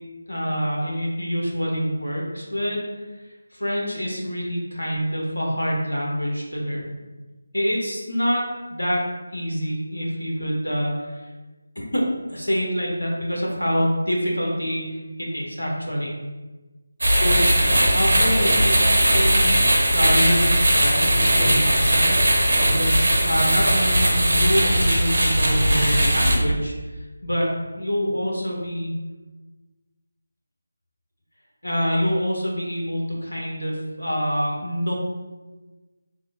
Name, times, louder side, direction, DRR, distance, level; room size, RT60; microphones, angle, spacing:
voice 1, 0.3-3.1 3.5-7.0 7.5-8.4 8.7-9.0 9.3-11.3 11.7-12.0 12.3-16.1 17.2-18.7 19.1-19.5 19.9-28.9 31.6-34.9, equal, 85° left, -3 dB, 1.1 m, -26 dB
sound 1, 17.0-26.4, right 1 dB, 65° right, 0.9 m, -19 dB
3.4 x 2.1 x 3.5 m, 1.2 s
figure-of-eight pair, 160°, 0 cm